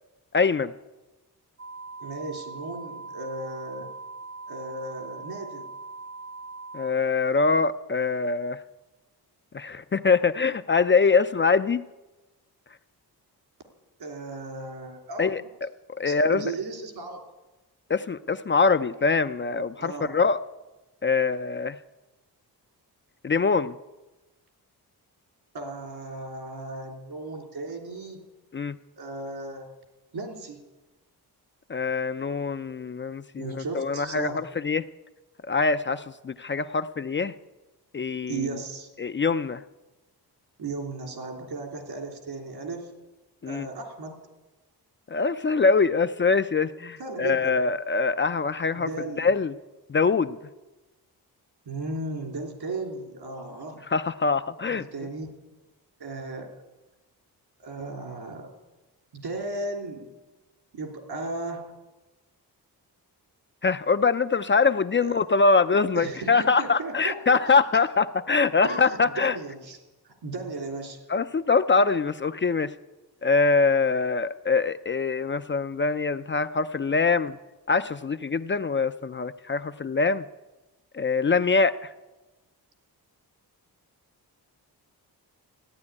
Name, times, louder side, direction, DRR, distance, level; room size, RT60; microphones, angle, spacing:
voice 1, 0.3-0.7 6.7-8.6 9.5-11.8 15.2-15.7 16.0-16.5 17.9-20.4 21.0-21.8 23.2-23.7 28.5-28.8 31.7-34.8 35.5-37.3 37.9-38.5 39.0-39.6 43.4-43.7 45.1-48.9 49.2-49.5 49.9-50.4 53.9-54.9 63.6-69.4 71.1-72.7 73.2-77.4 77.7-80.2 80.9-81.8, left 4 dB, 30° left, 12 dB, 0.4 m, -23 dB
sound 1, 1.6-6.9, right 3 dB, 40° right, 0.6 m, -41 dB
voice 2, 2.0-3.9 4.5-5.7 14.0-15.5 16.0-17.2 19.8-20.1 25.5-28.2 29.0-29.7 30.1-30.6 33.4-34.5 38.3-38.9 40.6-42.9 43.4-44.2 47.0-47.6 48.7-49.3 51.7-53.8 54.7-55.3 56.0-56.5 57.6-58.5 59.1-60.1 60.7-61.6 65.0-65.2 65.9-67.6 68.6-69.8 70.1-71.0, right 3 dB, 75° right, 3 dB, 3.3 m, -36 dB
14.0 x 10.5 x 9.7 m, 1.1 s
wide cardioid pair, 115°, 39 cm